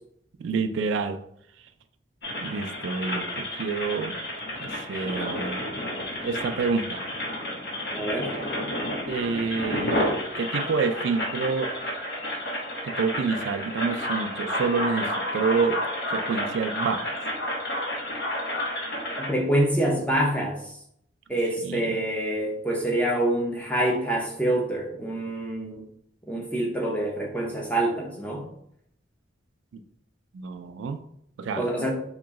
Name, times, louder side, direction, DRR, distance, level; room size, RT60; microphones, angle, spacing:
voice 1, 0.4-1.2 2.4-3.3 3.6-4.1 4.6-5.6 6.2-7.0 9.1-10.0 10.4-11.7 12.8-15.1 15.3-15.8 16.1-17.1 21.6-22.0 30.3-31.0 31.4-31.6, right 5 dB, 75° right, 9 dB, 0.3 m, -28 dB
sound 1, 2.2-19.3, left 1 dB, 55° left, 0.8 m, -31 dB
voice 2, 7.9-8.3 19.2-20.6 21.3-25.8 26.3-28.4 31.6-31.9, right 1 dB, 5° left, -1 dB, 0.6 m, -26 dB
2.9 x 2.9 x 3.5 m, 0.72 s
head